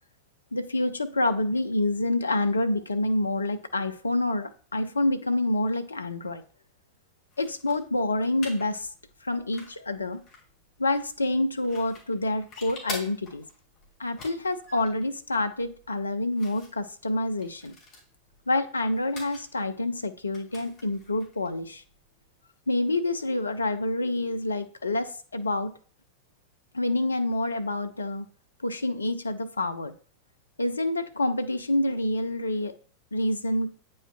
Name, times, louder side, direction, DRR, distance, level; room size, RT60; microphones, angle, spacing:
voice 1, 0.5-6.4 7.4-8.9 9.2-10.2 10.8-13.4 14.0-17.7 18.5-21.8 22.7-25.7 26.7-28.3 28.6-29.9 30.6-32.7 33.1-33.7, left 2 dB, 75° left, 0.4 m, -27 dB
sound 1, 7.3-22.4, left 3 dB, 35° left, 2.2 m, -47 dB
8.5 x 5.3 x 2.2 m
figure-of-eight pair, 90°, 0 cm